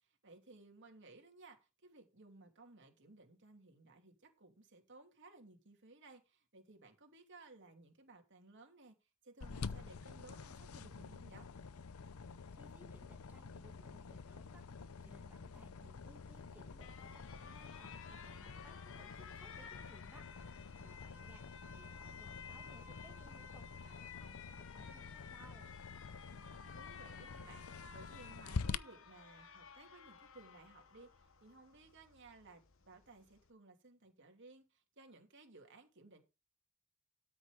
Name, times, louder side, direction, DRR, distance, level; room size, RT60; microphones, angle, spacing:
voice 1, 0.0-11.5 26.3-36.2, right 3 dB, 60° right, 2.9 m, -60 dB
sound 1, 9.4-28.8, left 4 dB, 90° left, 0.7 m, -48 dB
voice 2, 12.5-14.7 15.0-20.3 20.8-21.5 21.7-25.8, right 1 dB, 10° right, 2.1 m, -63 dB
Alarm, 16.3-33.5, left 6 dB, 70° left, 1.4 m, -55 dB
13.0 x 6.1 x 5.1 m
head